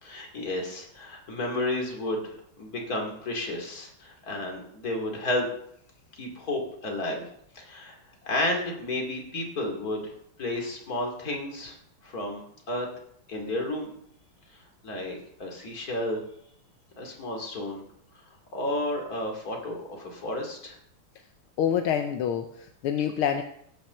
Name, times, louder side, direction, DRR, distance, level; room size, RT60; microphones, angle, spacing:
voice 1, 0.0-5.5 6.1-7.3 7.5-8.0 8.2-10.1 10.4-11.8 12.0-12.9 13.3-14.0 14.8-16.2 17.0-17.8 18.5-20.8, left 1 dB, 40° left, 1 dB, 3.0 m, -32 dB
voice 2, 21.6-23.4, left 9 dB, 80° left, 6 dB, 1.7 m, -27 dB
16.5 x 5.9 x 6.8 m, 0.70 s
omnidirectional pair, 2.4 m